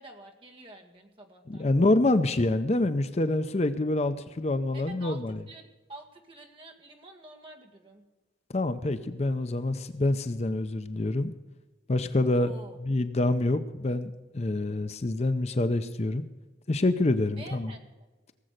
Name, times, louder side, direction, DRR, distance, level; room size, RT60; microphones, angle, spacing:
voice 1, 0.0-1.7 4.7-8.0 12.3-12.8 17.4-17.9, right 1 dB, 30° right, 1 dB, 1.9 m, -48 dB
voice 2, 1.5-5.4 8.5-11.3 11.9-12.5 12.8-16.2 16.7-17.7, left 2 dB, 35° left, 11 dB, 0.6 m, -26 dB
18.0 x 7.7 x 6.5 m, 1.2 s
head